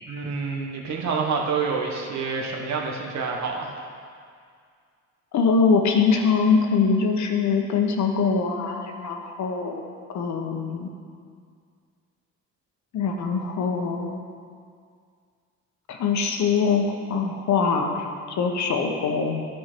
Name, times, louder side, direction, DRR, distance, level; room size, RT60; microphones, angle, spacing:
voice 1, 0.1-3.7, right 5 dB, 65° right, 0 dB, 1.3 m, -27 dB
voice 2, 5.3-9.8 10.1-10.9 12.9-14.2 15.9-19.5, left 5 dB, 70° left, 3 dB, 1.0 m, -23 dB
11.0 x 4.6 x 4.5 m, 2.2 s
cardioid pair, 90°, 30 cm